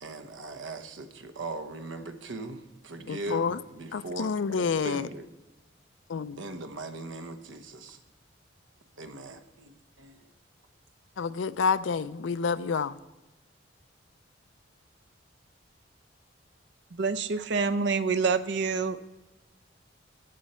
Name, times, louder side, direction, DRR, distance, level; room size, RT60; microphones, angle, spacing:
voice 1, 0.0-5.3 6.4-8.0 9.0-9.7 10.0-10.3, right 2 dB, 80° right, 0.9 m, -39 dB
voice 2, 3.1-3.6 3.9-5.1 6.1-6.4 11.2-13.0, left 5 dB, 75° left, 0.4 m, -28 dB
voice 3, 16.9-19.0, right 4 dB, 65° right, 0.6 m, -27 dB
14.5 x 7.8 x 4.3 m
head